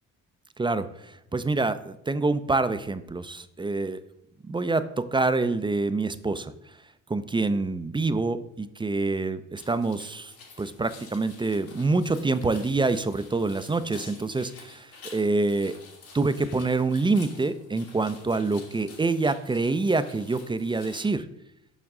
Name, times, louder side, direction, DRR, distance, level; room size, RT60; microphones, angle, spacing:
voice 1, 0.6-4.0 4.4-6.5 7.1-10.3 10.6-15.7 16.1-21.3, right 3 dB, 15° right, 12 dB, 0.4 m, -26 dB
sound 1, 9.6-21.1, left 4 dB, 80° left, 2.6 m, -49 dB
7.1 x 5.2 x 3.6 m, 0.78 s
supercardioid pair, 70°, 37 cm